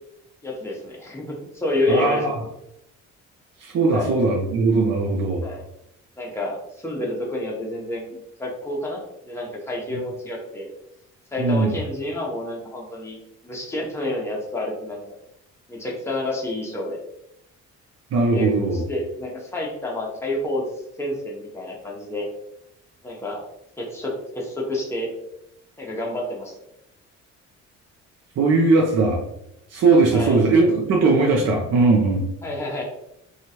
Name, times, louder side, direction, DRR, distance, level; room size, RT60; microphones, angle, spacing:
voice 1, 0.4-2.2 3.9-4.1 5.4-5.6 6.2-8.1 8.4-9.0 9.2-10.7 11.3-13.2 13.4-15.2 15.7-17.0 18.3-20.7 21.0-22.3 23.0-23.4 23.8-25.1 25.8-26.7 30.1-30.4 32.4-32.8, left 1 dB, 10° left, -2 dB, 0.8 m, -29 dB
voice 2, 1.9-2.3 3.6-5.4 11.4-11.7 18.1-18.8 28.4-29.2 29.7-32.3, right 3 dB, 55° right, -1 dB, 0.6 m, -19 dB
2.9 x 2.4 x 2.7 m, 0.80 s
cardioid pair, 90°, 30 cm